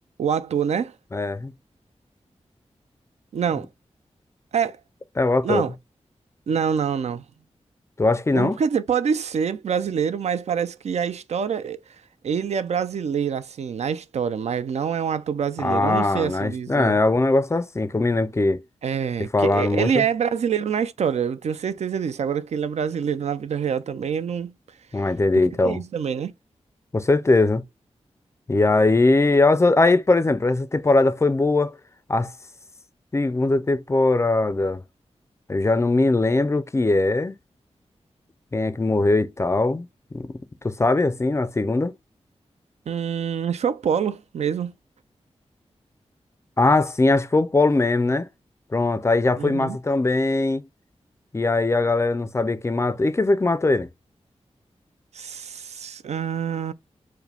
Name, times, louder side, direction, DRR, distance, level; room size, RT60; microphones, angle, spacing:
voice 1, 0.2-0.9 3.3-3.7 4.5-4.8 5.4-5.7 6.5-7.2 8.3-11.8 12.2-17.0 18.8-24.5 25.3-26.3 42.9-44.7 49.4-49.8 55.1-56.7, right 7 dB, 70° right, 0.4 m, -26 dB
voice 2, 1.1-1.5 5.2-5.6 8.0-8.6 15.6-18.6 19.3-20.0 24.9-25.8 26.9-27.6 28.5-31.8 32.1-32.3 33.1-34.8 35.5-37.3 38.5-40.3 40.6-41.9 46.6-48.3 48.7-50.6 51.3-53.9, left 2 dB, 25° left, 0.4 m, -20 dB
4.8 x 2.1 x 3.4 m
wide cardioid pair, 90°, 11 cm